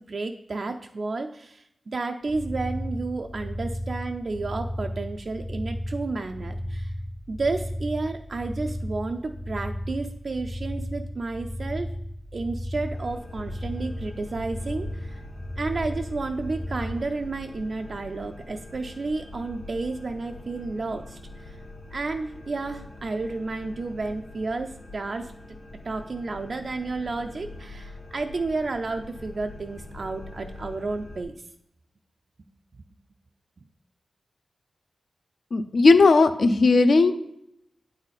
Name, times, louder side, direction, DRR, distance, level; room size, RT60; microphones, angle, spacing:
voice 1, 0.0-6.9 7.3-11.9 12.3-15.2 15.6-21.6 21.9-25.3 25.8-31.3, right 3 dB, 50° right, 5 dB, 0.4 m, -31 dB
sound 1, 2.3-17.0, equal, 5° left, 0.6 m, -34 dB
sound 2, 12.9-31.2, left 2 dB, 80° left, 2.0 m, -43 dB
voice 2, 35.5-37.1, left 3 dB, 60° left, 9 dB, 0.5 m, -17 dB
8.6 x 4.0 x 4.0 m, 0.79 s
wide cardioid pair, 115°, 0 cm